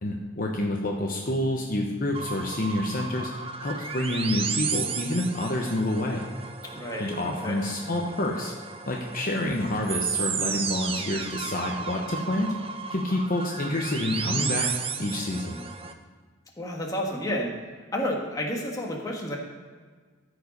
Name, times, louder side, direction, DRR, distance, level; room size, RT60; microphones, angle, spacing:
voice 1, 0.0-3.3 3.6-6.2 7.0-8.5 8.9-12.5 12.9-14.7 15.0-15.6, left 1 dB, 45° left, 0 dB, 0.9 m, -28 dB
sound 1, 2.1-15.9, right 6 dB, 30° right, 0.6 m, -34 dB
voice 2, 6.7-7.6 16.6-17.5 17.9-19.4, equal, 15° left, -1 dB, 1.4 m, -30 dB
14.0 x 5.0 x 5.3 m, 1.5 s
head